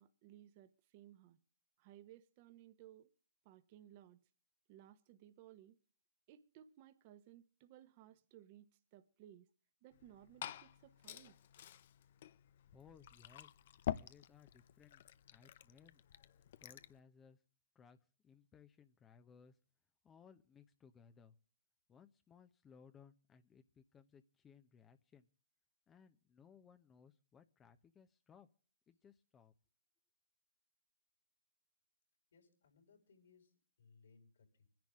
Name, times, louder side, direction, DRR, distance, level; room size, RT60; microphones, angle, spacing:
voice 1, 0.0-1.4 1.8-3.1 3.4-4.2 4.7-5.8 6.3-9.5 9.8-11.4, right 12 dB, 40° right, 1.2 m, -60 dB
Glass / Fill (with liquid), 9.9-17.0, left 11 dB, 55° left, 0.7 m, -48 dB
voice 2, 12.7-13.5 13.8-15.0 15.3-16.0 16.6-17.4 17.7-18.0 18.2-19.6 20.0-21.3 21.9-25.3 25.9-28.5 28.9-29.5, left 6 dB, 20° left, 0.8 m, -63 dB
voice 3, 32.3-33.5 33.8-34.7, left 5 dB, 75° left, 6.0 m, -67 dB
25.5 x 10.5 x 3.7 m
hypercardioid pair, 135°, 0 cm